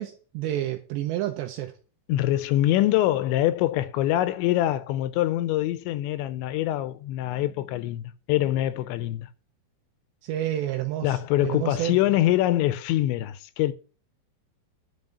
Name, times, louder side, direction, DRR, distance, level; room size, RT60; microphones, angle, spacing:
voice 1, 0.0-1.7 10.2-12.0, right 13 dB, 80° right, 2.8 m, -30 dB
voice 2, 2.1-8.0 8.3-9.3 11.0-13.7, left 14 dB, 85° left, 2.8 m, -24 dB
11.0 x 5.3 x 7.6 m
omnidirectional pair, 5.3 m